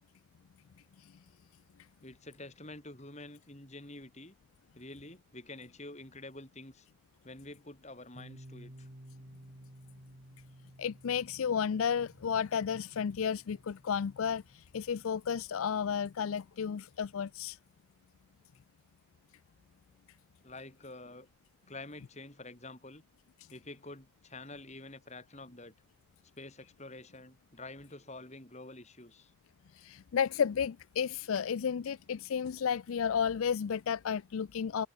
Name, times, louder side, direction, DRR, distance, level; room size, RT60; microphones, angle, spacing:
voice 1, 2.0-4.4 4.7-6.9 7.2-8.9 20.4-21.3 21.7-23.0 23.5-25.7 26.4-29.3, left 2 dB, 30° left, 4.7 m, -48 dB
Piano, 8.2-15.6, right 1 dB, 50° right, 3.1 m, -55 dB
voice 2, 10.8-17.6 29.8-34.9, left 7 dB, 80° left, 0.4 m, -32 dB
head